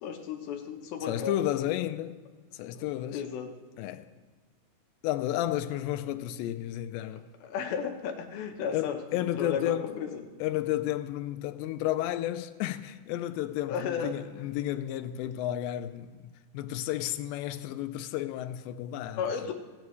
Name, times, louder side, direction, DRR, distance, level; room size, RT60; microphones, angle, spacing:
voice 1, 0.0-1.4 2.7-3.5 7.4-9.0 9.4-10.2 13.7-14.1 19.2-19.5, left 6 dB, 70° left, 2.5 m, -34 dB
voice 2, 1.1-2.2 2.5-3.2 3.8-4.1 5.0-7.2 8.7-9.9 10.4-16.1 16.5-19.5, left 13 dB, 90° left, 2.8 m, -32 dB
17.0 x 9.6 x 3.1 m
omnidirectional pair, 4.9 m